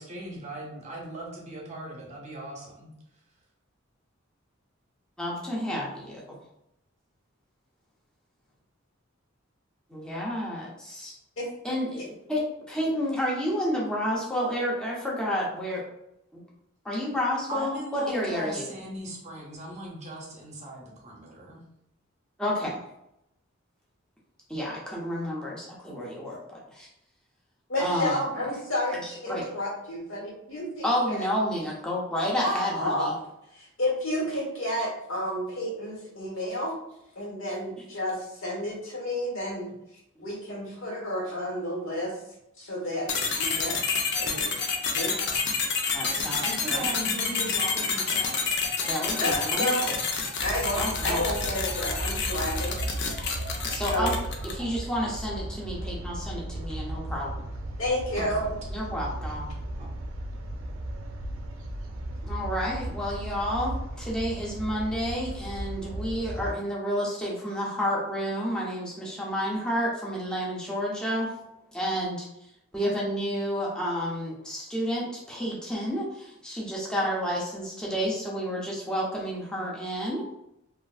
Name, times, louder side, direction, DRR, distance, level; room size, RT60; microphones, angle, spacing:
voice 1, 0.0-2.9 17.5-21.6 46.4-48.4 54.6-54.7 58.1-58.5 59.8-59.9, right 1 dB, 35° right, -2 dB, 0.7 m, -38 dB
voice 2, 5.2-6.4 9.9-11.1 11.6-15.8 16.3-16.4 16.8-18.7 22.4-22.8 24.5-26.9 27.8-28.2 29.0-29.4 30.8-33.1 34.8-34.9 45.9-46.4 46.7-46.9 48.8-49.9 50.8-51.2 53.7-54.1 54.5-57.4 58.7-59.5 62.2-71.3 71.7-72.3 72.7-80.2, equal, 5° left, -5 dB, 0.6 m, -30 dB
voice 3, 27.7-31.3 32.4-33.1 33.5-36.8 37.1-39.7 40.2-42.1 42.6-44.6 45.0-45.2 46.1-46.3 49.2-49.8 50.4-52.8 53.8-54.1 56.8-57.0 57.8-58.5, left 1 dB, 85° left, -3 dB, 1.3 m, -31 dB
sound 1, 43.1-54.7, left 5 dB, 55° left, 0.5 m, -29 dB
sound 2, 50.4-66.5, right 1 dB, 90° right, 0.4 m, -36 dB
3.1 x 2.4 x 2.3 m, 0.81 s
head